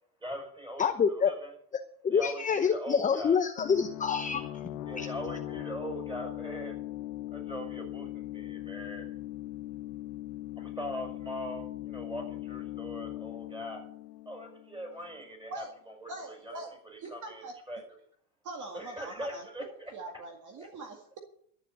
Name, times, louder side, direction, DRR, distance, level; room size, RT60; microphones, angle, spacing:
voice 1, 0.2-1.5 2.1-3.4 4.8-6.8 7.3-9.1 10.6-13.8 14.3-16.6 16.9-17.8 18.7-19.9 20.6-20.7, equal, 10° right, 2 dB, 6.3 m, -41 dB
voice 2, 0.8-1.3 2.0-4.5 5.0-5.1, left 6 dB, 15° left, 8 dB, 0.7 m, -26 dB
sound 1, 3.6-15.1, left 15 dB, 85° left, 1.1 m, -40 dB
voice 3, 16.1-16.7 17.0-17.5 18.4-19.5 19.9-21.2, right 2 dB, 35° right, 3 dB, 2.0 m, -42 dB
13.0 x 7.6 x 8.1 m, 0.65 s
supercardioid pair, 115°, 48 cm